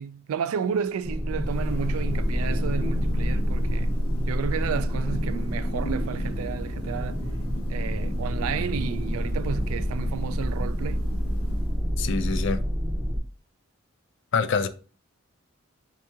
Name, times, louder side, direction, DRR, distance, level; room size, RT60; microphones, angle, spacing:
voice 1, 0.0-3.9 4.3-7.2 7.7-11.1, right 7 dB, 80° right, 0.3 m, -32 dB
sound 1, 1.0-13.2, equal, 5° right, 0.5 m, -28 dB
Thunder, 1.1-12.1, equal, 80° left, 0.8 m, -34 dB
voice 2, 12.0-12.6 14.3-14.7, left 5 dB, 55° left, 0.4 m, -25 dB
3.6 x 2.8 x 3.5 m
head